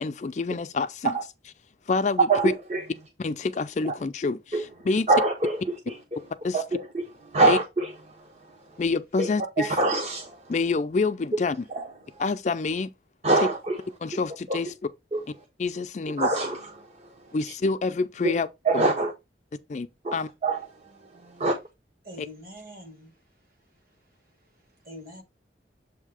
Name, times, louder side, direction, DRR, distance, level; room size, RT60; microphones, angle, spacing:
voice 1, 0.0-1.2 1.9-2.5 3.2-5.1 6.4-6.6 7.4-7.6 8.8-9.7 10.5-11.6 12.2-12.9 14.0-14.7 15.6-16.3 17.3-18.5 18.7-18.8 19.7-19.9 20.1-20.3, left 3 dB, 40° left, 0.4 m, -27 dB
voice 2, 2.3-2.8 4.5-4.7 5.1-5.6 5.9-6.2 6.5-6.6 6.9-7.0 7.3-7.9 9.2-9.3 9.6-10.4 11.7-11.9 13.2-13.8 14.5-14.6 15.1-15.2 16.2-16.9 18.2-18.3 18.6-19.1 20.4-20.6 21.2-21.5, right 2 dB, 35° right, 0.8 m, -24 dB
voice 3, 22.0-23.2 23.7-25.2, equal, 55° right, 2.2 m, -46 dB
7.3 x 2.7 x 4.8 m
head